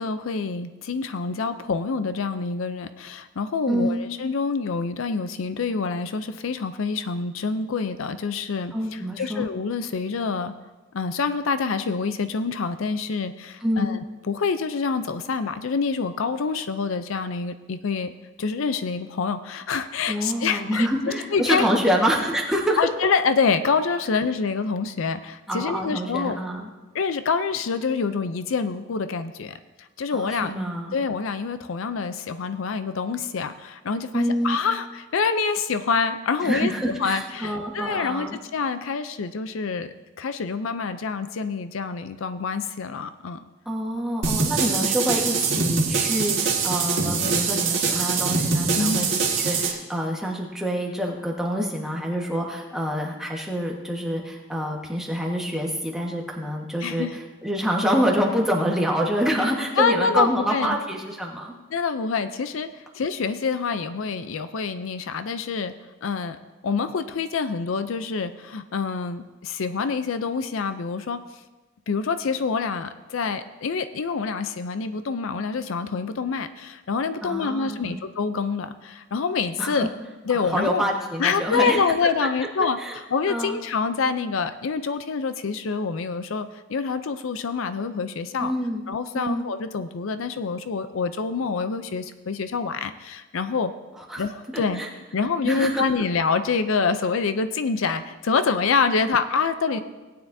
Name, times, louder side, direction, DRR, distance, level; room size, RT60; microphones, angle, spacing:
voice 1, 0.0-10.5 10.9-14.0 14.3-18.1 18.4-20.9 21.3-21.6 22.8-26.4 26.9-30.5 30.9-39.9 40.2-43.4 48.7-49.1 56.8-57.2 59.8-60.8 61.7-65.7 66.0-66.4 66.6-71.2 71.9-79.9 80.3-80.8 81.2-88.5 88.9-93.7 94.2-94.8 95.1-99.8, left 5 dB, 65° left, 10 dB, 0.5 m, -26 dB
voice 2, 3.7-4.1 8.7-9.5 13.6-14.0 20.1-22.8 25.5-26.7 30.1-31.0 34.1-34.6 36.4-38.4 43.6-61.6 77.2-78.0 79.6-79.9 80.5-82.1 82.4-83.0 83.3-83.6 88.4-88.8 89.1-89.4 94.0-94.2 94.5-94.9 95.4-95.8 99.7-99.8, equal, ahead, -2 dB, 1.3 m, -26 dB
sound 1, 44.2-49.7, right 5 dB, 55° right, 1.7 m, -23 dB
18.0 x 9.5 x 2.7 m, 1.2 s
head